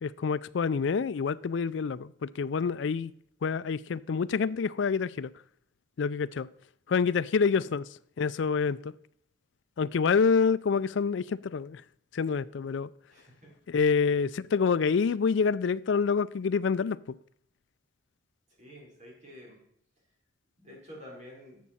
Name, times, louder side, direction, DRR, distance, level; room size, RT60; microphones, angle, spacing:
voice 1, 0.0-3.1 3.4-5.3 6.0-6.5 6.9-7.9 8.2-8.9 9.8-11.8 12.1-12.9 13.7-17.2, left 5 dB, 70° left, 0.4 m, -27 dB
voice 2, 13.1-13.5 18.6-19.6 20.6-21.6, equal, 35° right, 4.1 m, -49 dB
11.5 x 7.3 x 4.2 m
head